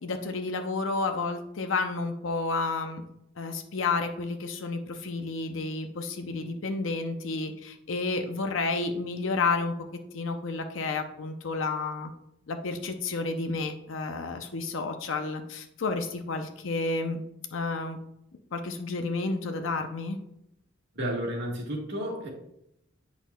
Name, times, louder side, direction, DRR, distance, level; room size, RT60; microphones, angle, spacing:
voice 1, 0.0-3.0 3.4-9.7 10.1-12.1 12.5-17.2 17.5-18.0 18.5-20.2, left 3 dB, 70° left, 6 dB, 0.6 m, -31 dB
voice 2, 20.9-22.3, equal, 60° right, 0 dB, 1.5 m, -32 dB
8.2 x 5.8 x 2.2 m, 0.80 s
head